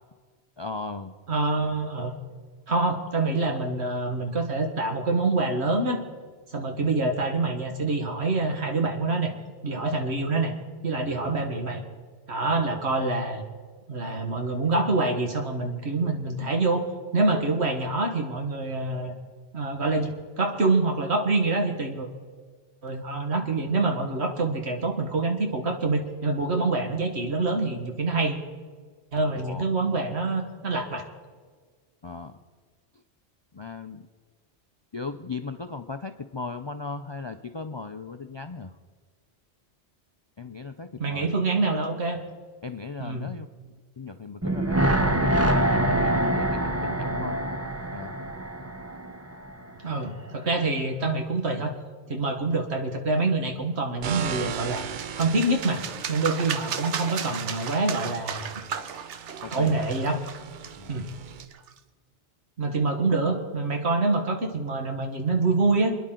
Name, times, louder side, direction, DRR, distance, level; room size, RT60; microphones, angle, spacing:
voice 1, 0.6-1.1 29.4-29.6 32.0-32.4 32.9-33.0 33.5-34.1 34.9-38.8 40.4-41.4 42.6-45.3 45.6-47.4 47.9-48.2 59.4-59.9 60.8-61.0, left 4 dB, 40° left, 8 dB, 0.4 m, -37 dB
voice 2, 1.3-2.2 2.7-6.0 6.5-9.3 9.6-10.5 10.8-11.8 12.3-13.4 13.9-16.8 17.1-19.1 19.5-22.1 22.8-28.4 29.1-31.1 41.0-42.2 43.0-43.3 49.8-51.7 52.1-54.8 55.1-55.8 56.1-58.4 59.5-60.2 60.9-61.1 62.6-66.0, right 3 dB, 70° right, 3 dB, 1.8 m, -26 dB
sound 1, 44.4-49.6 49.9-50.0, right 1 dB, 15° right, 0.7 m, -25 dB
sound 2, 54.0-61.5, right 8 dB, 55° right, 0.6 m, -39 dB
sound 3, 54.3-61.8, right 7 dB, 90° right, 1.1 m, -35 dB
27.5 x 10.0 x 3.8 m, 1.5 s
omnidirectional pair, 1.2 m